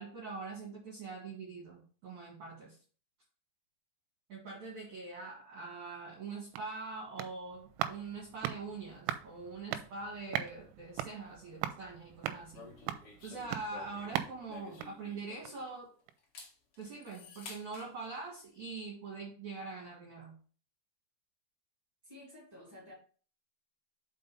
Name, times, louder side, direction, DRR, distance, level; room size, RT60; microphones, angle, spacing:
voice 1, 0.0-2.8 4.3-12.7 13.2-15.9 16.8-20.4, right 4 dB, 55° right, 2.4 m, -43 dB
sound 1, 6.2-15.7 16.1-16.2, right 12 dB, 90° right, 3.1 m, -41 dB
sound 2, 12.5-15.8 16.2-17.9, left 5 dB, 85° left, 1.2 m, -52 dB
voice 2, 22.0-22.9, left 1 dB, 10° right, 1.6 m, -52 dB
5.7 x 5.4 x 5.4 m
omnidirectional pair, 5.5 m